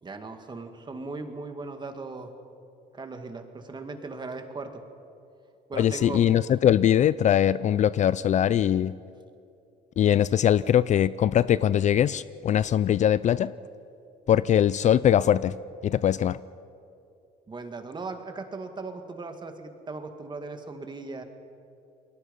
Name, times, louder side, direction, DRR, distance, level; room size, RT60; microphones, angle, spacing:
voice 1, 0.0-2.3 2.9-4.7 5.7-6.2 17.5-21.2, right 3 dB, 25° right, 6 dB, 2.2 m, -38 dB
voice 2, 5.7-8.9 10.0-13.5 14.3-15.5 15.8-16.4, left 10 dB, 45° left, 18 dB, 0.4 m, -21 dB
29.0 x 21.5 x 5.5 m, 2.6 s
cardioid pair, 110°, 17 cm